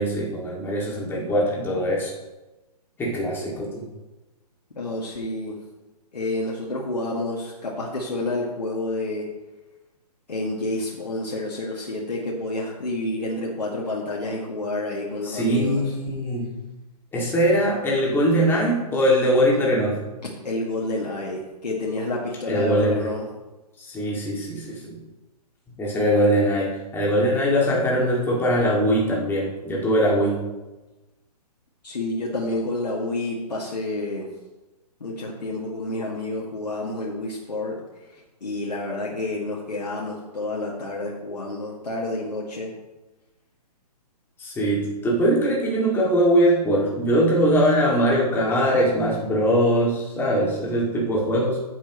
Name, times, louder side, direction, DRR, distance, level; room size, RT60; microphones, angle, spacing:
voice 1, 0.0-2.1 3.0-3.8 15.2-16.6 17.1-20.0 22.5-23.1 23.8-25.0 25.8-30.5 44.4-51.6, equal, 10° left, -4 dB, 2.3 m, -21 dB
voice 2, 4.8-5.6 6.1-9.3 10.3-15.8 20.4-23.3 31.8-34.3 35.0-37.8 38.4-42.7, left 2 dB, 90° left, -3 dB, 2.0 m, -29 dB
14.5 x 7.5 x 3.1 m, 1.1 s
hypercardioid pair, 145°, 21 cm